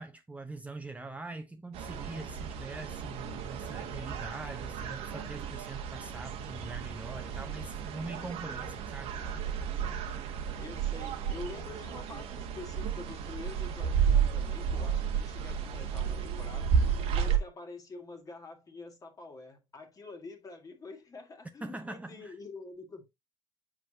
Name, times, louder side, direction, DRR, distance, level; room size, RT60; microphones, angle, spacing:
voice 1, 0.0-9.1 21.6-22.3, right 2 dB, 10° right, 1.0 m, -43 dB
sound 1, 1.7-17.4, right 7 dB, 55° right, 1.4 m, -32 dB
voice 2, 10.6-23.0, left 3 dB, 30° left, 1.9 m, -47 dB
8.3 x 4.8 x 2.7 m
figure-of-eight pair, 55°, 12 cm